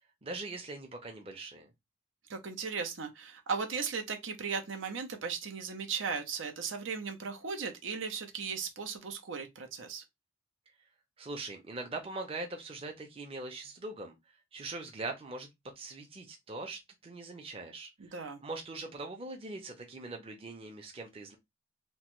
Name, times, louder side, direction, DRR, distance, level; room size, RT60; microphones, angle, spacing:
voice 1, 0.2-1.7 11.2-14.1 14.5-15.5 15.8-17.9 18.4-21.4, right 2 dB, 30° right, 0.6 m, -41 dB
voice 2, 2.3-10.0 18.0-18.4, right 5 dB, 85° right, 0.7 m, -37 dB
3.0 x 2.2 x 3.0 m
head